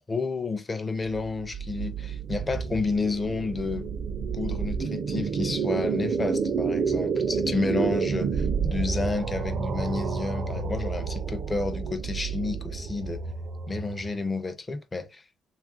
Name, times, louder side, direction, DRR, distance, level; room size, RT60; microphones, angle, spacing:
voice 1, 0.0-3.9 4.3-13.2 13.7-15.2, left 3 dB, 20° left, 0.4 m, -31 dB
sound 1, 1.1-14.2, right 5 dB, 50° right, 0.4 m, -29 dB
3.1 x 2.4 x 2.4 m
cardioid pair, 140°, 0 cm